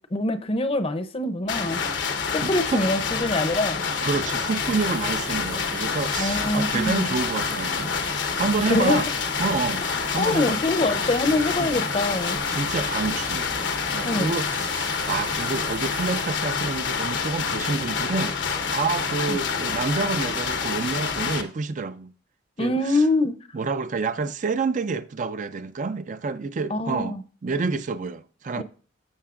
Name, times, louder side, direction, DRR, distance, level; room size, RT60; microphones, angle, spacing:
voice 1, 0.1-1.8 2.3-3.8 6.2-7.2 8.7-9.0 9.8-12.4 14.0-14.4 19.3-19.4 22.6-23.4 26.7-27.2 28.5-28.6, left 2 dB, 30° left, 0.6 m, -24 dB
sound 1, 1.5-21.4, left 5 dB, 85° left, 1.0 m, -27 dB
voice 2, 2.4-2.8 4.0-7.9 8.4-9.1 9.4-9.8 10.1-10.6 11.6-11.7 12.5-13.5 13.9-22.1 22.6-23.0 23.5-27.2 27.4-28.6, right 4 dB, 45° right, 0.4 m, -28 dB
sound 2, 4.6-16.3, right 5 dB, 85° right, 0.9 m, -41 dB
12.5 x 6.5 x 2.5 m
head